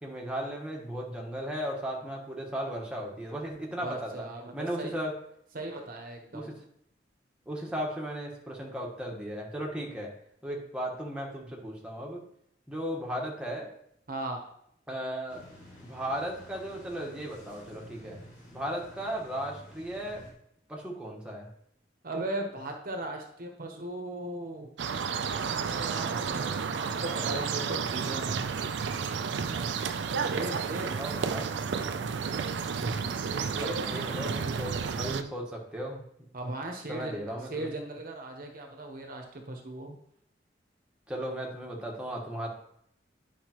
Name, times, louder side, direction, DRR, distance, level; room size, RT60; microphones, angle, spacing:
voice 1, 0.0-4.3 4.5-5.2 6.3-6.6 7.5-10.1 10.4-12.2 12.7-13.7 14.9-15.4 15.8-18.2 18.5-20.2 20.7-21.5 31.0-31.5 32.5-36.3 36.9-37.7 41.1-42.5, equal, 5° right, -2 dB, 1.3 m, -36 dB
voice 2, 3.8-5.0 5.5-6.5 14.1-14.4 22.0-24.7 25.4-28.4 30.2-31.0 33.5-34.1 36.3-40.0, right 2 dB, 50° right, 3 dB, 0.9 m, -37 dB
sound 1, 15.3-20.3, equal, 50° left, 3.1 m, -51 dB
sound 2, 24.8-35.2, right 6 dB, 80° right, 0.4 m, -31 dB
10.0 x 5.1 x 3.0 m, 0.71 s
head